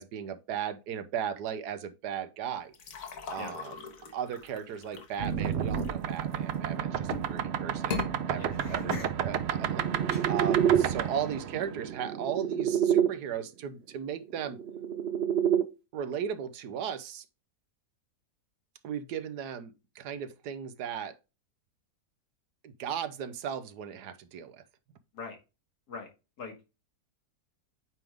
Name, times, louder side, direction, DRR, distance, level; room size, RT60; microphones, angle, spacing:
voice 1, 0.0-2.7 3.3-3.8 4.1-8.0 8.3-8.9 9.2-14.6 15.9-17.2 18.8-21.1 22.6-24.6, right 8 dB, 85° right, 1.3 m, -36 dB
sound 1, 2.7-6.5 7.0-7.4 7.8-8.1, left 5 dB, 55° left, 1.5 m, -40 dB
sound 2, 5.2-13.1 14.4-15.6, right 9 dB, 60° right, 0.7 m, -29 dB
voice 2, 8.3-9.1 10.1-10.3 25.1-25.4 25.9-26.1 26.4-26.7, left 4 dB, 75° left, 2.6 m, -40 dB
8.9 x 3.6 x 3.4 m
omnidirectional pair, 1.7 m